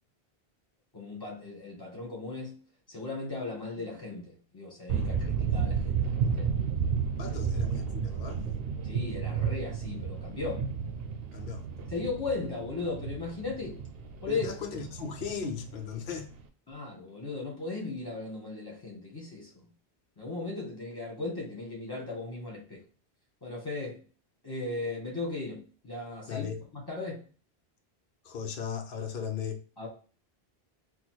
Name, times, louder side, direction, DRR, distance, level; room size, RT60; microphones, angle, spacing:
voice 1, 0.9-2.5 2.9-6.5 7.3-7.4 8.8-10.7 11.9-13.8 14.2-14.5 16.7-19.5 20.2-22.8 23.4-24.0 24.4-27.2 29.8-29.9, left 3 dB, 20° left, 1.8 m, -37 dB
sound 1, 4.9-16.4, right 6 dB, 70° right, 0.8 m, -32 dB
voice 2, 7.2-8.4 11.3-11.6 14.3-16.3 26.3-26.6 28.2-29.6, left 6 dB, 65° left, 0.8 m, -37 dB
4.2 x 2.4 x 4.4 m
omnidirectional pair, 1.0 m